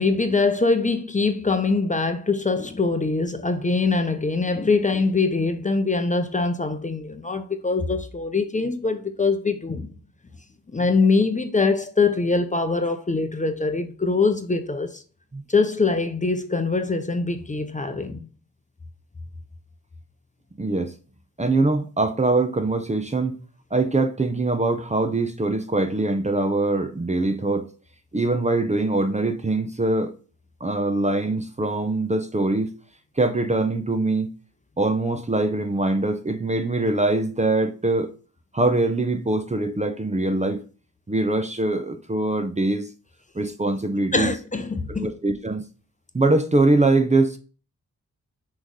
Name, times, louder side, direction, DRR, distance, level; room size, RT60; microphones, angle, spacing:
voice 1, 0.0-9.9 10.7-15.0 15.5-18.3 44.1-45.1, left 3 dB, 25° left, 0.7 m, -23 dB
voice 2, 20.6-20.9 21.4-23.4 23.7-27.7 28.1-30.1 30.6-32.7 33.2-34.3 34.8-38.1 38.5-40.6 41.1-42.9 43.3-44.3 44.9-45.6 46.1-47.4, right 2 dB, 20° right, 0.7 m, -23 dB
6.1 x 3.2 x 5.3 m
cardioid pair, 85°, 33 cm